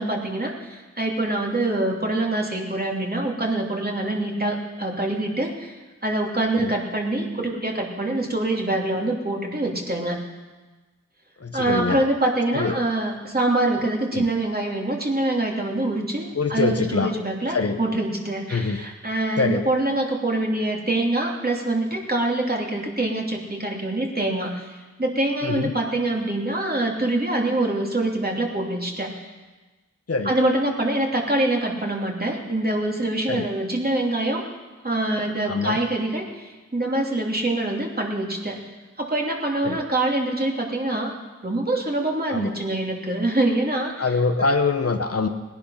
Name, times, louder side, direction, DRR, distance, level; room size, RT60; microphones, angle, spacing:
voice 1, 0.0-5.7 6.0-10.2 11.5-29.3 30.2-34.4 34.8-38.6 39.0-41.1 41.4-44.1, right 2 dB, 30° right, -1 dB, 3.0 m, -25 dB
voice 2, 11.4-12.0 12.5-12.7 14.1-14.2 16.3-17.1 17.5-17.8 18.5-18.8 19.4-19.7 25.4-25.7 30.1-30.3 33.3-33.5 35.5-35.8 39.6-39.8 42.3-42.5 44.0-45.3, left 4 dB, 50° left, 7 dB, 1.1 m, -24 dB
18.5 x 10.5 x 5.8 m, 1.2 s
cardioid pair, 40°, 30 cm